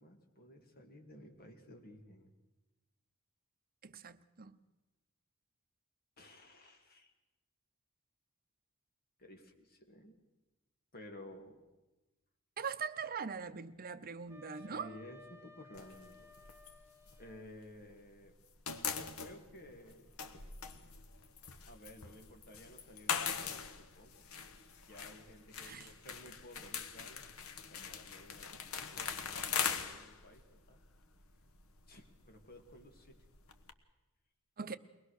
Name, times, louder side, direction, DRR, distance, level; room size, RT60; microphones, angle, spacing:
voice 1, 0.0-2.3 6.2-7.1 9.2-10.2 10.9-11.6 14.5-16.3 17.2-18.3 18.9-20.1 21.7-24.6 24.9-27.3 27.7-29.4 29.8-30.8 31.9-33.2, left 1 dB, 45° left, 2.3 m, -55 dB
voice 2, 3.8-4.6 12.6-14.9 25.6-25.9 34.6-34.8, right 6 dB, 45° right, 0.8 m, -42 dB
Wind instrument woodwind instrument, 14.3-17.5, left 3 dB, 10° right, 1.1 m, -58 dB
sound 1, 15.8-18.0 18.3-33.7, left 6 dB, 75° left, 1.2 m, -42 dB
23.0 x 19.0 x 6.5 m
head